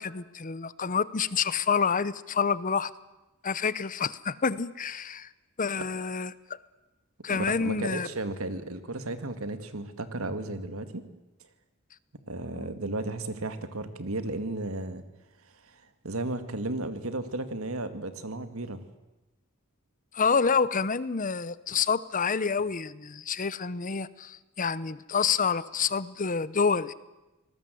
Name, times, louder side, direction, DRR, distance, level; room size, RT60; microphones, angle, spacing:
voice 1, 0.0-2.9 3.4-5.3 5.6-6.6 7.2-8.1 12.5-12.6 20.1-26.9, left 5 dB, 40° left, 17 dB, 0.8 m, -28 dB
voice 2, 7.3-11.0 12.3-15.0 15.6-18.9, right 2 dB, 85° right, 10 dB, 2.0 m, -34 dB
26.0 x 19.5 x 7.8 m, 1.0 s
head